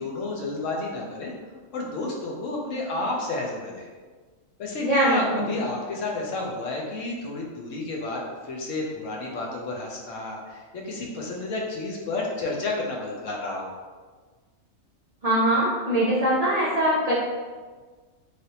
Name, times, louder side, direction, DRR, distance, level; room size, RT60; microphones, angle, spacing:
voice 1, 0.0-1.3 1.7-3.9 4.6-13.7, left 2 dB, 75° left, -1 dB, 1.0 m, -31 dB
voice 2, 4.8-5.6 15.2-17.1, right 1 dB, 40° right, -9 dB, 0.5 m, -22 dB
3.3 x 2.6 x 2.7 m, 1.4 s
omnidirectional pair, 1.4 m